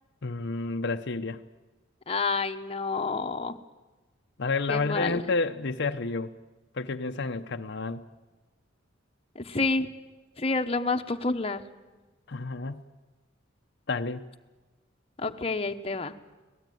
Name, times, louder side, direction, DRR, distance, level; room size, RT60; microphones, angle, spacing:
voice 1, 0.2-1.4 4.4-6.3 6.7-8.0 12.3-12.8 13.9-14.2, left 3 dB, 60° left, 6 dB, 0.8 m, -30 dB
voice 2, 2.1-3.6 4.7-5.2 9.3-9.9 10.4-11.6 15.2-16.1, left 3 dB, 30° left, 6 dB, 1.1 m, -29 dB
25.5 x 18.0 x 9.3 m, 1.2 s
head